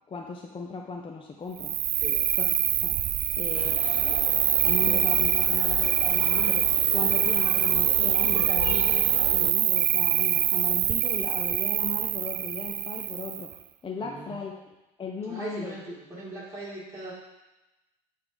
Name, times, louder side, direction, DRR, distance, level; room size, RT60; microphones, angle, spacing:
voice 1, 0.1-1.7 2.4-2.5 2.8-3.0 3.4-3.9 4.6-13.5 13.8-14.6 15.0-15.8, left 4 dB, 25° left, 1 dB, 0.8 m, -37 dB
Cricket, 1.6-13.5, right 11 dB, 40° right, 0.4 m, -24 dB
sound 1, 3.5-9.5, left 14 dB, 60° left, 0.4 m, -37 dB
voice 2, 4.7-5.1 8.3-8.6 14.0-14.4 15.3-17.1, right 2 dB, 15° right, -7 dB, 2.6 m, -40 dB
8.0 x 3.7 x 5.1 m, 1.0 s
hypercardioid pair, 75°, 20 cm